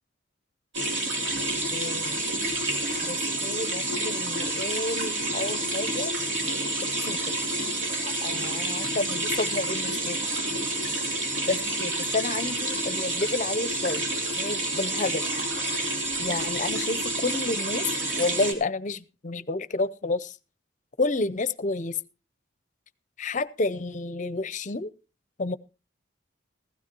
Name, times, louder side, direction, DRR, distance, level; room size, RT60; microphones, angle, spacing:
sound 1, 0.7-18.5, right 2 dB, 70° right, 3.1 m, -29 dB
voice 1, 1.7-2.2 3.0-6.1 7.1-7.3 8.0-10.2 11.5-14.0 14.4-15.2 16.2-17.8 18.2-20.4 21.0-22.0 23.2-24.9 25.4-25.6, left 3 dB, 40° left, 17 dB, 0.6 m, -30 dB
16.0 x 15.0 x 2.9 m, 0.30 s
head